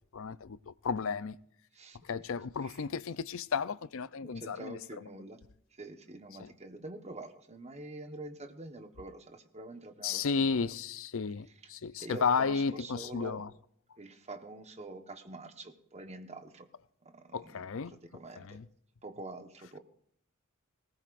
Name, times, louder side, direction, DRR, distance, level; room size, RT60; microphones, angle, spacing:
voice 1, 0.1-1.4 2.0-4.8 6.4-6.5 10.0-13.5 17.3-18.0 18.4-18.7, left 5 dB, 65° left, 0.6 m, -33 dB
voice 2, 4.2-5.4 5.7-10.7 12.0-13.4 14.0-16.7 17.0-17.6 18.1-18.6 19.0-19.8, right 2 dB, 30° right, 1.3 m, -46 dB
20.0 x 18.0 x 2.6 m
head